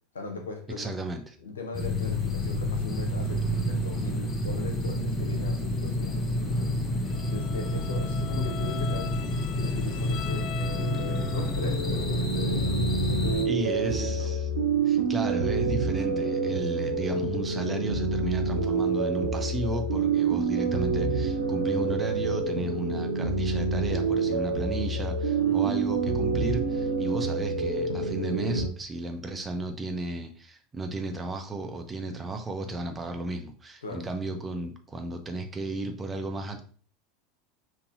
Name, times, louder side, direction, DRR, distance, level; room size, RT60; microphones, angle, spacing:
voice 1, 0.1-0.9 1.4-6.7 7.3-10.5 11.0-14.3 25.4-25.7 33.8-34.1, left 3 dB, 80° left, 4 dB, 0.9 m, -39 dB
voice 2, 0.8-1.3 13.4-14.4 14.8-36.7, right 2 dB, 20° right, 5 dB, 0.7 m, -34 dB
sound 1, 1.7-13.5, left 1 dB, 25° left, 1.1 m, -29 dB
Bowed string instrument, 7.1-11.7, left 10 dB, 45° left, 0.5 m, -42 dB
sound 2, 10.3-28.7, right 4 dB, 80° right, 0.7 m, -28 dB
5.3 x 2.8 x 2.7 m, 0.43 s
figure-of-eight pair, 80°, 0 cm